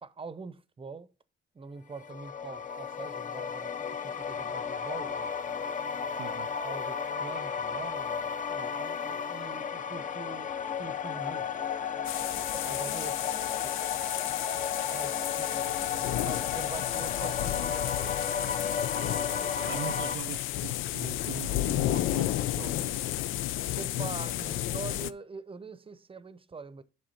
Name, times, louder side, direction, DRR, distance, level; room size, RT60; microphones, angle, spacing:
voice 1, 0.0-1.1 1.5-5.3 6.2-11.5 12.5-13.8 14.9-18.7 23.8-26.8, right 4 dB, 25° right, 0.8 m, -44 dB
sound 1, 1.9-20.2, left 7 dB, 40° left, 0.8 m, -34 dB
sound 2, 12.0-25.1, left 13 dB, 90° left, 0.5 m, -32 dB
voice 2, 19.6-22.9, right 12 dB, 70° right, 0.5 m, -42 dB
7.8 x 5.9 x 4.2 m
cardioid pair, 90°, 20 cm